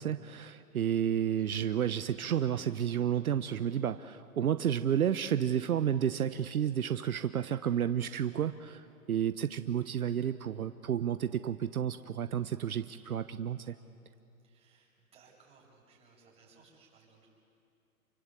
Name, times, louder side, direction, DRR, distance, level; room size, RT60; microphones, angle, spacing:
voice 1, 0.0-13.8, right 9 dB, 70° right, 11 dB, 1.0 m, -31 dB
voice 2, 7.3-7.7 14.4-17.3, right 4 dB, 15° right, -4 dB, 7.3 m, -62 dB
28.5 x 24.0 x 8.4 m, 2.6 s
hypercardioid pair, 145°, 45 cm